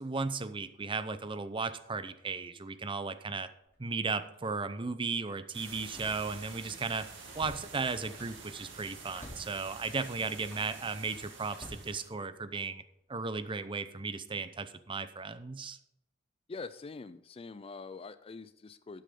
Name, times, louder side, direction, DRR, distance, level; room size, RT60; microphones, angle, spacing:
voice 1, 0.0-3.5 3.8-7.1 7.3-12.8 13.1-15.8, right 4 dB, 25° right, 12 dB, 0.6 m, -35 dB
Slam, 3.6-3.9 4.3-4.5 5.8-6.6 6.9-8.5 9.1-9.6 10.3-10.8 11.5-12.6 13.2-13.5, left 1 dB, 10° left, 3.2 m, -51 dB
sound 1, 5.5-12.1, right 4 dB, 70° right, 2.2 m, -49 dB
voice 2, 16.5-19.0, left 4 dB, 30° left, 15 dB, 0.4 m, -44 dB
12.0 x 8.5 x 3.7 m, 0.80 s
head